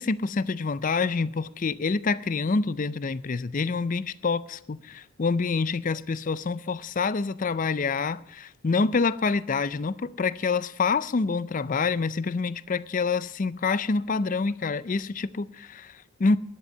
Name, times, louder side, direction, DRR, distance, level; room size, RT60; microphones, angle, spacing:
voice 1, 0.0-16.4, left 4 dB, 35° left, 0.4 m, -27 dB
12.0 x 11.0 x 6.6 m
head